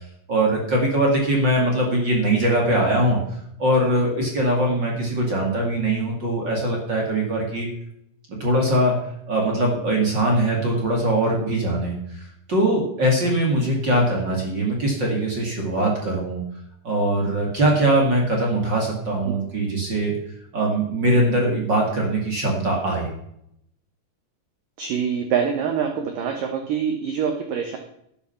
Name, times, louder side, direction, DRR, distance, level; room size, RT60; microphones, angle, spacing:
voice 1, 0.3-3.2 3.6-7.7 8.3-9.0 9.3-16.4 16.8-20.2 20.5-23.1, right 1 dB, 40° right, 0 dB, 1.8 m, -21 dB
voice 2, 24.8-27.8, right 7 dB, 80° right, 5 dB, 1.9 m, -25 dB
11.5 x 9.0 x 5.7 m, 0.74 s
omnidirectional pair, 5.5 m